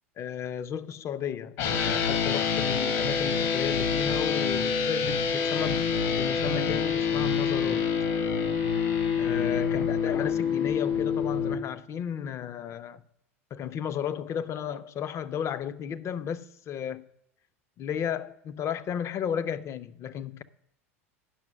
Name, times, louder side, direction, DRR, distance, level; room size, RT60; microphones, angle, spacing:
voice 1, 0.2-8.0 9.2-13.0 13.5-17.0 17.8-20.4, left 8 dB, 35° left, 0.6 m, -33 dB
sound 1, 1.6-11.5, left 6 dB, 55° left, 1.2 m, -26 dB
10.0 x 6.0 x 6.2 m
figure-of-eight pair, 80°, 8 cm